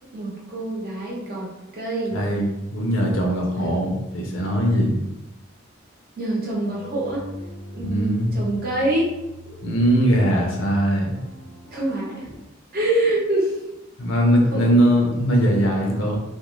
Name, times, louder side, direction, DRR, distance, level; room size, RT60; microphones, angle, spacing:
voice 1, 0.0-2.2 3.6-3.9 6.2-7.3 7.7-9.1 11.7-12.3 12.7-13.6 14.5-14.7, right 1 dB, 45° right, -5 dB, 0.8 m, -25 dB
voice 2, 2.1-5.0 7.8-8.3 9.6-11.1 14.0-16.2, equal, 70° left, 0 dB, 0.6 m, -20 dB
sound 1, 6.7-12.3, left 1 dB, 10° left, 0.5 m, -43 dB
2.5 x 2.1 x 3.0 m, 0.93 s
head